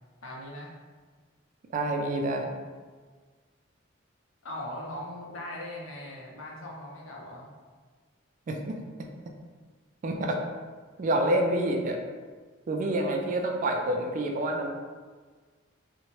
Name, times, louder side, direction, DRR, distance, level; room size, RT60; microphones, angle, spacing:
voice 1, 0.2-0.7 4.4-7.6, left 1 dB, 85° left, -3 dB, 0.6 m, -40 dB
voice 2, 1.7-2.5 8.5-8.8 10.0-10.4 11.0-12.0 12.7-14.7, right 1 dB, 40° right, 2 dB, 0.3 m, -27 dB
2.8 x 2.1 x 3.0 m, 1.5 s
head